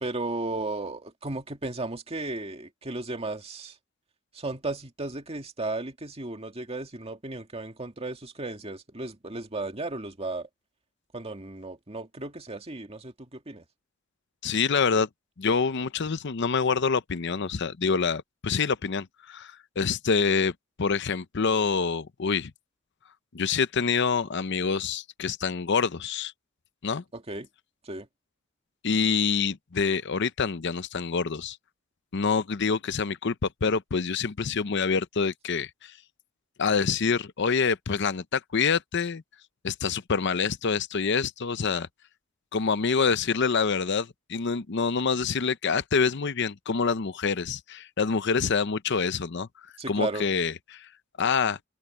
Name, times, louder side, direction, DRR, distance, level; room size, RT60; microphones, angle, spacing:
voice 1, 0.0-3.8 4.3-10.5 11.1-13.6 27.1-27.5 27.8-28.1 49.8-50.3, right 2 dB, 30° right, 2.0 m, -35 dB
voice 2, 14.4-15.1 15.4-20.5 20.8-22.5 23.3-26.3 26.8-27.0 28.8-31.6 32.1-33.3 33.6-35.9 36.6-39.2 39.6-41.9 42.5-49.5 49.9-50.9 51.2-51.6, left 5 dB, 60° left, 0.7 m, -26 dB
open air
head